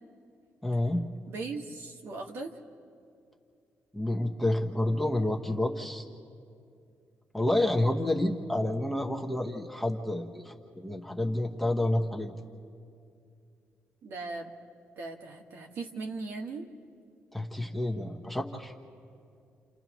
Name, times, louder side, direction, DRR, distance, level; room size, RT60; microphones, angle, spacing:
voice 1, 0.6-1.0 3.9-6.0 7.3-12.3 17.3-18.7, left 1 dB, 5° left, 0 dB, 0.9 m, -29 dB
voice 2, 1.3-2.5 14.0-14.5 15.0-16.7, right 3 dB, 60° right, 1 dB, 1.6 m, -38 dB
30.0 x 29.0 x 3.1 m, 2.4 s
cardioid pair, 175°, 5 cm